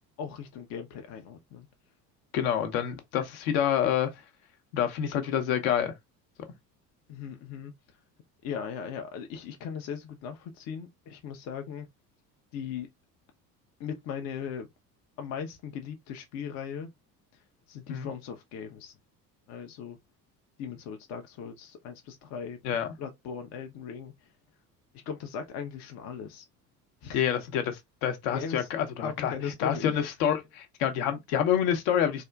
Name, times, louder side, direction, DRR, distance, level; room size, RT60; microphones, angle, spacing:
voice 1, 0.2-1.7 7.1-8.0 8.4-11.9 12.5-12.9 13.8-14.7 15.2-16.9 17.3-18.9 19.5-20.0 20.6-24.4 25.0-26.5 27.0-27.2 28.3-28.7 29.0-30.0, left 7 dB, 35° left, 0.5 m, -38 dB
voice 2, 2.3-4.1 4.7-5.9 17.9-18.1 22.6-22.9 27.1-29.3 29.6-32.2, left 9 dB, 55° left, 0.8 m, -27 dB
3.5 x 2.4 x 2.2 m
figure-of-eight pair, 65°, 49 cm